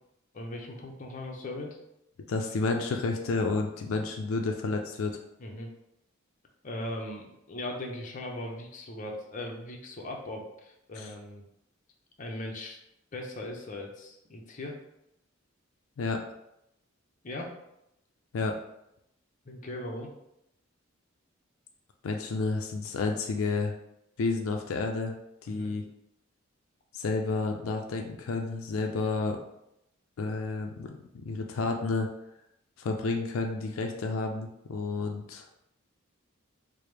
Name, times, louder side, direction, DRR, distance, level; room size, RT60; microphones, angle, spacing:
voice 1, 0.3-1.8 5.4-5.7 6.6-11.4 12.2-12.8 13.1-14.8 17.2-17.5 19.5-20.1 25.5-25.7, left 1 dB, 40° left, 1 dB, 0.6 m, -39 dB
voice 2, 2.3-5.2 11.0-11.1 16.0-16.2 18.3-18.6 22.0-23.7 24.2-25.1 25.4-25.8 26.9-29.4 30.2-31.0 31.2-32.1 32.8-35.5, left 3 dB, 80° left, 3 dB, 0.4 m, -30 dB
4.7 x 2.0 x 3.3 m, 0.83 s
head